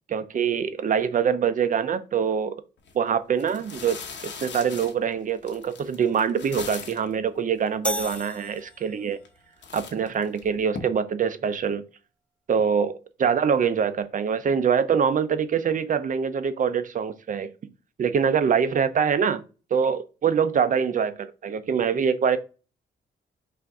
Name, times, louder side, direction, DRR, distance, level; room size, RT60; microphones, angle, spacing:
voice 1, 0.1-2.5 2.9-4.0 4.4-9.2 9.7-11.8 12.5-17.5 18.0-19.4 19.7-22.4, right 7 dB, 45° right, 0.5 m, -24 dB
sound 1, 2.8-2.9 3.4-7.1 7.7-7.8 7.9-8.6 9.1-9.4 9.6-10.8, left 6 dB, 65° left, 1.0 m, -40 dB
sound 2, 7.8-9.2, left 1 dB, 5° left, 0.4 m, -33 dB
5.6 x 2.6 x 3.5 m
wide cardioid pair, 135°, 20 cm